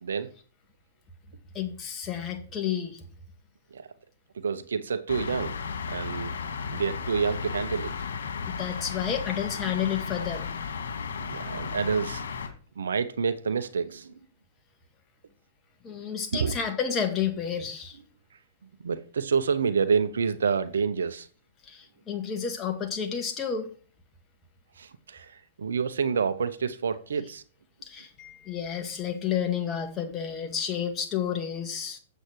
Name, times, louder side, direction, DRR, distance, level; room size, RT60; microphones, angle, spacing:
voice 1, 0.0-0.3 3.7-3.9 4.3-5.6 5.9-6.4 6.6-8.0 11.2-12.3 12.8-14.1 16.3-16.5 18.8-21.3 24.8-27.4, right 6 dB, 80° right, 1.0 m, -28 dB
voice 2, 1.5-3.0 8.5-10.5 15.8-18.0 21.7-23.7 27.8-32.0, left 8 dB, 25° left, 2.1 m, -31 dB
sound 1, 5.1-12.5, left 6 dB, 75° left, 2.3 m, -34 dB
8.4 x 7.9 x 4.7 m
hypercardioid pair, 120°, 0 cm